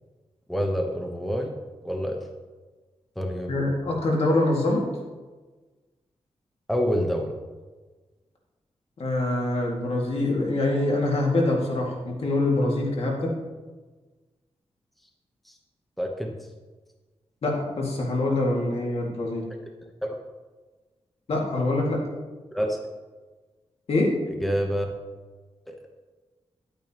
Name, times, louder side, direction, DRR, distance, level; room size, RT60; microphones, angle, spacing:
voice 1, 0.5-1.5 1.8-2.2 3.2-3.5 6.7-7.3 15.5-15.6 16.0-16.3 20.0-20.2 22.5-22.8 24.3-24.9 25.7-25.8, equal, ahead, 2 dB, 0.9 m, -27 dB
voice 2, 3.5-4.8 9.0-13.3 17.4-19.4 21.3-22.0 23.9-24.1, left 2 dB, 70° left, -1 dB, 2.1 m, -24 dB
10.5 x 8.9 x 2.9 m, 1.3 s
wide cardioid pair, 105°, 11 cm